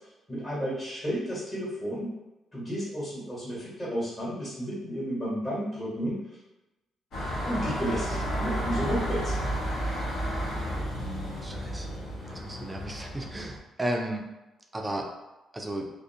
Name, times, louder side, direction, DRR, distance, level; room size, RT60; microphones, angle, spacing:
voice 1, 0.3-2.1 2.5-6.2 7.4-9.4, equal, 20° left, -7 dB, 1.1 m, -32 dB
sound 1, 7.1-13.6, equal, 75° left, 0.8 m, -32 dB
voice 2, 11.4-12.0 12.2-14.3 14.7-15.1 15.5-15.9, right 1 dB, 15° right, 2 dB, 0.4 m, -34 dB
2.4 x 2.0 x 2.7 m, 1.0 s
cardioid pair, 90°, 0 cm